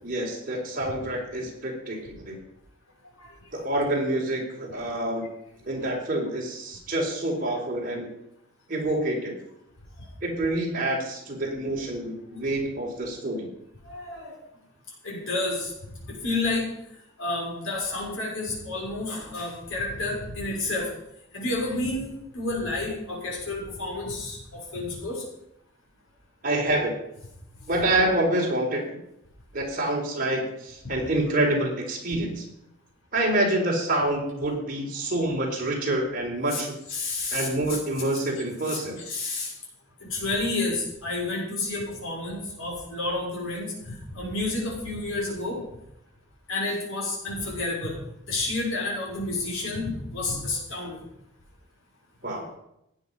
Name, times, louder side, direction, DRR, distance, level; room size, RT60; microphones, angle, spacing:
voice 1, 0.0-2.4 3.5-5.3 5.7-8.1 8.7-9.4 10.2-13.5 26.4-26.9 27.7-29.0 29.5-32.5 33.1-36.8 37.3-39.0 52.2-52.5, right 1 dB, 40° right, 0 dB, 4.1 m, -27 dB
voice 2, 13.8-14.4 15.0-15.7 16.1-20.9 21.3-25.2 36.5-36.6 36.9-37.5 38.7-38.8 39.1-39.5 40.0-45.6 46.5-48.0 48.3-51.0, left 2 dB, 80° left, -2 dB, 6.1 m, -30 dB
16.0 x 10.0 x 5.5 m, 0.81 s
head